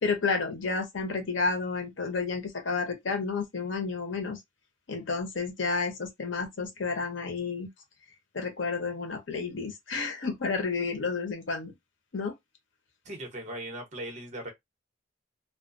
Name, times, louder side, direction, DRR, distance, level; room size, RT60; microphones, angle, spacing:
voice 1, 0.0-4.4 4.9-7.7 8.3-11.7 12.1-12.3, left 4 dB, 85° left, 0.8 m, -31 dB
voice 2, 13.0-14.5, right 1 dB, 40° right, 0.9 m, -38 dB
2.3 x 2.2 x 2.5 m
head